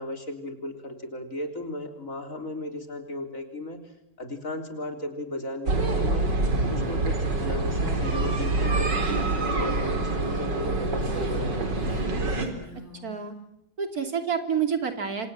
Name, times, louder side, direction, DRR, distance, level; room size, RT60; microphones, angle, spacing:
voice 1, 0.0-3.8 4.2-6.3 6.7-11.9, left 1 dB, 50° left, 5 dB, 4.0 m, -36 dB
sound 1, 5.7-12.5, right 2 dB, 85° right, 4.4 m, -26 dB
Female speech woman speaking, 8.9-9.5 11.0-13.2, left 1 dB, 65° left, 8.1 m, -45 dB
voice 2, 13.0-13.3 13.8-15.3, right 7 dB, 55° right, 6 dB, 3.4 m, -28 dB
28.5 x 26.5 x 7.6 m, 0.78 s
omnidirectional pair, 1.8 m